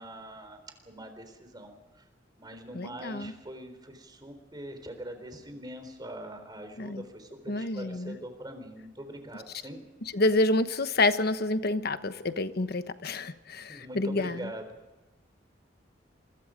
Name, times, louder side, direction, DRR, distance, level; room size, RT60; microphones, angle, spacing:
voice 1, 0.0-2.0 2.4-9.8 13.7-14.8, right 1 dB, 25° right, 7 dB, 3.9 m, -43 dB
voice 2, 2.7-3.3 6.8-7.0 7.5-8.2 10.1-14.5, left 2 dB, 55° left, 11 dB, 1.1 m, -28 dB
27.0 x 22.0 x 5.1 m, 1.1 s
head